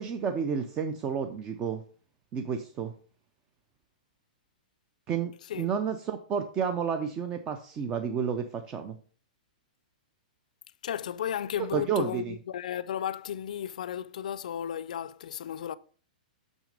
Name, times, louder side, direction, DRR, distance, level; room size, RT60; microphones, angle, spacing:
voice 1, 0.0-1.8 2.3-2.9 5.1-9.0 11.7-12.4, right 7 dB, 15° right, 0.4 m, -31 dB
voice 2, 10.8-15.8, left 10 dB, 55° left, 0.4 m, -34 dB
6.4 x 6.1 x 5.1 m
hypercardioid pair, 180°, 5 cm